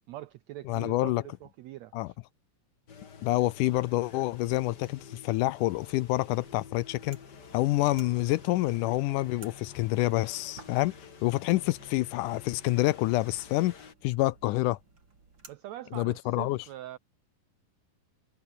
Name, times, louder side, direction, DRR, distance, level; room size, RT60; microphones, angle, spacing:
voice 1, 0.1-2.2 15.5-17.0, right 14 dB, 80° right, 1.6 m, -43 dB
voice 2, 0.7-1.2 1.9-2.1 3.2-7.2 7.5-10.9 11.2-13.7 14.0-14.8 15.9-16.6, left 18 dB, 80° left, 2.0 m, -27 dB
sound 1, 2.9-13.9, left 6 dB, 35° left, 2.1 m, -50 dB
sound 2, 6.1-15.6, right 4 dB, 35° right, 4.3 m, -57 dB
omnidirectional pair, 3.9 m